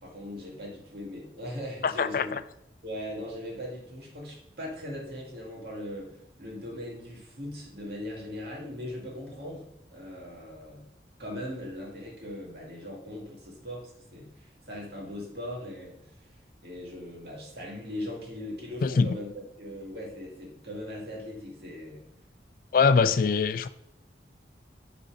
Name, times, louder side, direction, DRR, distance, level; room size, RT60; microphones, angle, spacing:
voice 1, 0.0-2.4 2.8-10.9 11.2-16.4 16.6-19.3 19.6-22.1, left 1 dB, 60° right, 2.0 m, -39 dB
voice 2, 1.8-2.4 18.8-19.1 22.7-23.7, left 5 dB, 50° left, 0.3 m, -23 dB
6.8 x 4.0 x 5.1 m
head